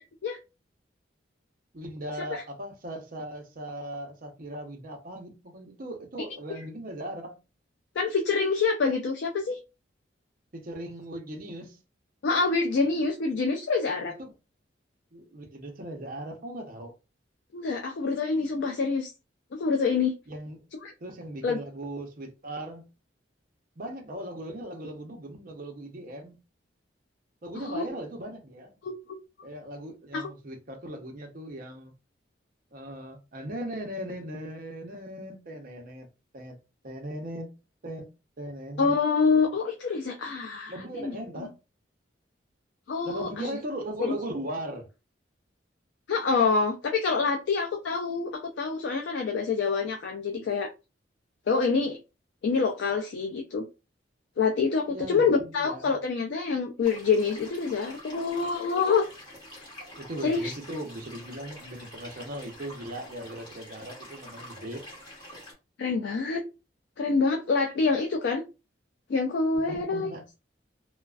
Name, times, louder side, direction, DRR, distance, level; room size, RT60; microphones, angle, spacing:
voice 1, 1.7-7.4 10.5-11.8 14.2-14.3 15.1-16.9 20.3-20.6 21.0-22.8 23.8-26.4 27.4-28.8 29.4-31.9 32.7-36.1 36.3-36.6 36.8-37.5 37.8-38.1 38.4-39.0 40.7-41.5 43.0-44.9 54.9-56.0 60.0-64.9 69.7-70.3, right 1 dB, 50° right, 0.6 m, -38 dB
voice 2, 8.0-9.6 12.2-14.2 17.5-19.1 19.5-20.1 20.8-20.9 21.4-21.6 27.5-27.8 28.8-29.2 30.1-30.3 38.8-41.1 42.9-43.5 44.0-44.2 46.1-50.7 51.5-52.0 52.4-53.7 54.4-59.1 60.2-60.5 65.8-66.4 67.0-68.4 69.1-70.1, left 4 dB, 65° left, 0.3 m, -26 dB
sound 1, 56.8-65.5, equal, 25° left, 1.1 m, -47 dB
2.3 x 2.3 x 2.3 m
head